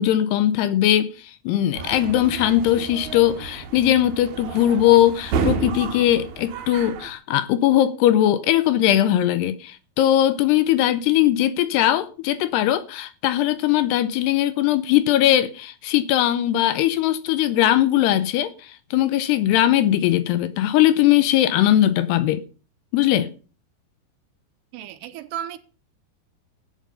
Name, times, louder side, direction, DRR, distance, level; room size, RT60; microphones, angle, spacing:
voice 1, 0.0-22.4 22.9-23.3, left 12 dB, 80° left, 2.7 m, -20 dB
sound 1, 1.7-7.1, right 5 dB, 60° right, 2.0 m, -31 dB
voice 2, 24.7-25.6, right 10 dB, 80° right, 2.7 m, -33 dB
14.0 x 8.9 x 5.5 m
omnidirectional pair, 5.1 m